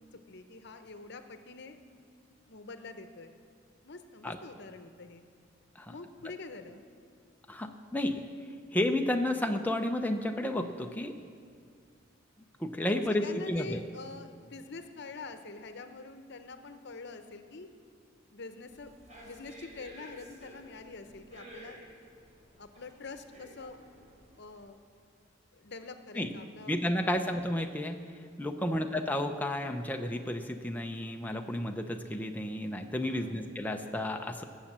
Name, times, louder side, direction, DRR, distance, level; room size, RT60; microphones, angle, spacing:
voice 1, 0.3-1.8 2.5-3.4 3.8-5.2 5.9-6.8 12.8-17.7 18.3-18.9 19.2-21.8 22.6-23.8 24.4-24.8 25.5-27.2 28.6-28.9 33.1-33.5, left 3 dB, 60° left, 8 dB, 0.9 m, -45 dB
voice 2, 7.5-8.2 8.7-11.1 12.6-13.9 26.1-26.3 26.7-28.0 28.4-34.4, left 1 dB, 10° left, 4 dB, 0.6 m, -32 dB
sound 1, 18.7-24.6, right 1 dB, 40° right, 4.0 m, -53 dB
19.0 x 7.2 x 7.4 m, 2.2 s
head